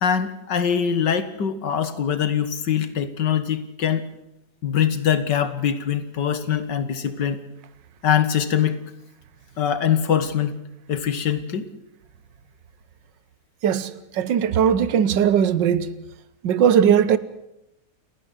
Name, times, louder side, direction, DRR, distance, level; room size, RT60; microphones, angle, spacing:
voice 1, 0.0-4.1 4.6-7.4 8.0-8.8 9.6-10.6 10.9-11.7, left 8 dB, 75° left, 2.1 m, -23 dB
voice 2, 14.2-15.8 16.4-17.2, right 8 dB, 85° right, 1.7 m, -18 dB
29.5 x 10.5 x 9.6 m
omnidirectional pair, 1.9 m